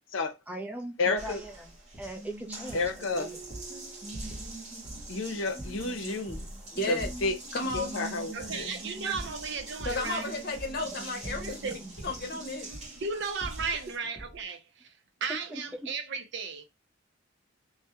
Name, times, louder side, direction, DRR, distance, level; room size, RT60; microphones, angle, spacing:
voice 1, 0.5-1.7 2.0-3.3 13.7-13.8 15.5-15.6, right 2 dB, 10° right, 0.5 m, -39 dB
voice 2, 1.0-1.4 2.7-3.3 5.1-6.5 6.9-7.4 7.7-8.7, left 3 dB, 80° left, 0.6 m, -31 dB
Water tap faucet, 1.2-14.0, right 2 dB, 35° right, 0.9 m, -43 dB
sound 1, 1.9-2.1 2.7-3.0 3.4-3.7 4.1-4.6 4.8-5.2 5.6-6.7 7.0-8.0 8.4-8.7 9.1-10.2 10.5-10.9 11.2-12.3 12.7-13.0 13.4-13.8 14.2-14.4, right 1 dB, 15° left, 0.8 m, -42 dB
voice 3, 6.7-7.1 7.5-8.0 9.8-12.7, left 2 dB, 55° left, 0.8 m, -34 dB
voice 4, 8.3-10.3 11.4-11.8 13.0-14.9 15.2-16.6, right 5 dB, 65° right, 0.6 m, -35 dB
2.3 x 2.1 x 2.8 m
head